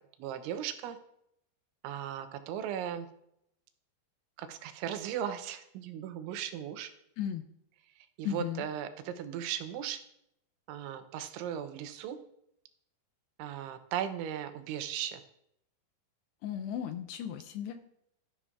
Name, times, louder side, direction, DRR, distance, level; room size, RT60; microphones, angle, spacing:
voice 1, 0.2-1.0 1.8-3.1 4.4-6.9 8.0-10.0 10.7-12.2 13.4-15.2, right 10 dB, 90° right, 9 dB, 3.2 m, -37 dB
voice 2, 8.2-8.6 16.4-17.8, left 9 dB, 80° left, 8 dB, 2.5 m, -35 dB
13.5 x 11.0 x 2.4 m, 0.76 s
omnidirectional pair, 5.3 m